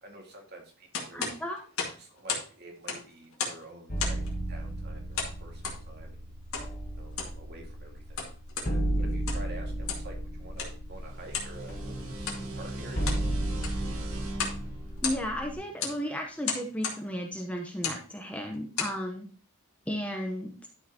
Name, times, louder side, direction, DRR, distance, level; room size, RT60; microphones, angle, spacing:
voice 1, 0.0-1.3 2.0-4.2 4.5-6.3 6.9-8.3 9.0-13.2, right 1 dB, 50° right, 1 dB, 2.1 m, -48 dB
sound 1, 0.9-2.5 2.8-3.6 4.0-4.3 5.1-5.8 6.5-6.7 7.0-7.4 8.0-8.7 9.1-9.5 9.8-10.1 10.6-10.7 11.3-11.5 12.2-12.4 12.8-13.2 13.5-13.9 14.3-14.6 14.9-15.4 15.8-16.0 16.4-17.0 17.7-18.0 18.5-19.0, left 5 dB, 75° left, 2.1 m, -34 dB
voice 2, 1.1-1.6 15.0-19.3 19.9-20.7, equal, 5° left, 2 dB, 0.8 m, -34 dB
sound 2, 3.9-15.5, right 1 dB, 40° left, 1.7 m, -34 dB
sound 3, 10.9-16.2, right 2 dB, 85° right, 1.7 m, -40 dB
11.5 x 5.6 x 2.9 m, 0.39 s
head